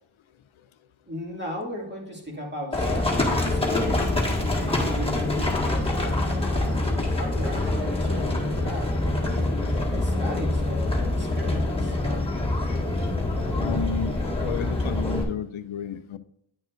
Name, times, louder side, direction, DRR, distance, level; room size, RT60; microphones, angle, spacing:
voice 1, 1.1-9.5 9.9-12.0, equal, 20° right, -2 dB, 2.3 m, -37 dB
Livestock farm animals working animals, 2.7-15.2, left 2 dB, 10° left, 1.7 m, -25 dB
voice 2, 13.6-16.2, left 7 dB, 80° left, 13 dB, 0.6 m, -32 dB
9.6 x 6.2 x 2.5 m, 0.70 s
wide cardioid pair, 70°, 47 cm